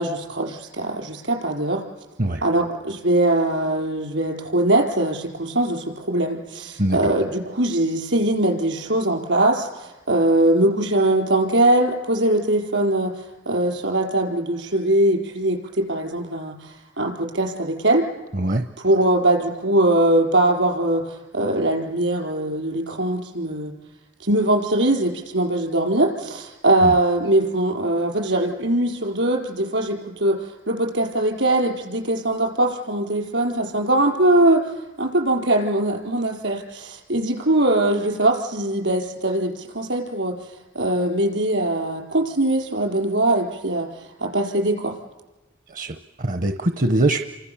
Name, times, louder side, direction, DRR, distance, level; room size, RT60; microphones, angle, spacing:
voice 1, 0.0-1.8 2.4-18.1 18.8-23.7 24.2-40.4 40.7-45.0, right 1 dB, 75° right, 2 dB, 4.9 m, -21 dB
voice 2, 45.7-47.2, right 1 dB, 45° right, 8 dB, 0.8 m, -22 dB
29.5 x 24.5 x 7.1 m, 1.1 s
head